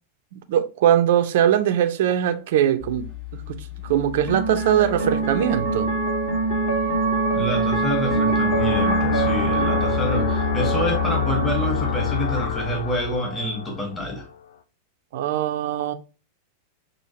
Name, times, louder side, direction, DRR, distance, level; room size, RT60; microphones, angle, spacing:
voice 1, 0.3-3.1 3.5-3.6 3.8-5.9 15.1-15.9, right 10 dB, 55° right, 0.5 m, -21 dB
sound 1, 2.8-13.1, right 2 dB, 35° left, 1.6 m, -25 dB
voice 2, 7.3-14.3, equal, 15° left, 1.4 m, -27 dB
sound 2, 8.4-14.5, left 9 dB, 60° left, 0.4 m, -27 dB
6.3 x 2.4 x 2.8 m
figure-of-eight pair, 90°, 0 cm